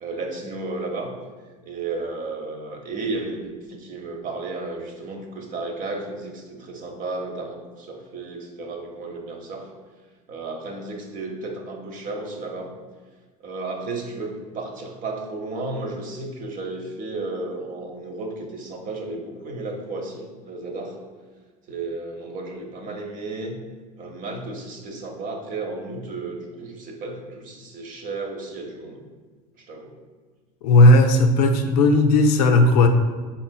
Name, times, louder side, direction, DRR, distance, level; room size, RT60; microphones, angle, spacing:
voice 1, 0.0-1.1 1.6-9.7 10.3-12.7 13.4-21.0 21.7-23.6 24.0-29.0 29.6-29.9, right 3 dB, 45° right, 3 dB, 0.7 m, -33 dB
voice 2, 30.6-32.9, left 2 dB, 80° left, 6 dB, 0.5 m, -15 dB
4.2 x 3.7 x 2.2 m, 1.4 s
supercardioid pair, 100°, 20 cm